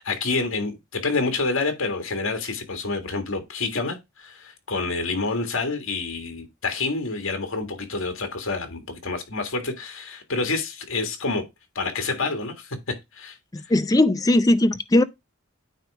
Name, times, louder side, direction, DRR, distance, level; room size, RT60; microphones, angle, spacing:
voice 1, 0.0-11.4 11.8-13.4, left 3 dB, 75° left, 1.9 m, -28 dB
voice 2, 13.7-15.0, left 1 dB, 15° left, 0.4 m, -18 dB
9.1 x 3.2 x 4.8 m
head